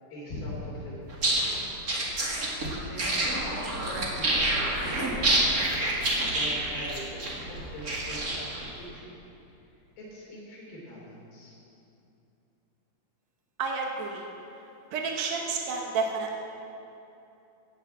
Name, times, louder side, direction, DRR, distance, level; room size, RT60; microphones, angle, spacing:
voice 1, 0.1-1.7 2.9-9.1 10.0-11.6, equal, 65° left, -5 dB, 5.2 m, -42 dB
sound 1, 1.1-8.7, right 1 dB, 40° right, 1.3 m, -28 dB
voice 2, 13.6-14.2 14.9-16.4, right 4 dB, 85° right, 1 dB, 1.5 m, -30 dB
16.0 x 7.3 x 8.3 m, 2.8 s
omnidirectional pair, 4.7 m